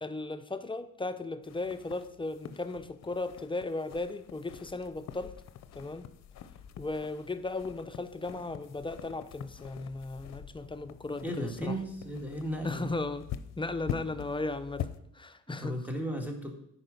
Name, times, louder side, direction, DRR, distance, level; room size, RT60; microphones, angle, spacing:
voice 1, 0.0-5.3 5.7-6.1 6.8-11.8 12.6-13.3 13.6-14.9 15.1-15.8, left 2 dB, 15° left, 10 dB, 0.5 m, -36 dB
sound 1, 1.4-15.0, left 10 dB, 65° left, 0.6 m, -45 dB
voice 2, 11.2-12.9 15.5-16.5, equal, 5° right, 2 dB, 1.8 m, -35 dB
10.0 x 4.6 x 5.2 m, 0.73 s
cardioid pair, 90°, 30 cm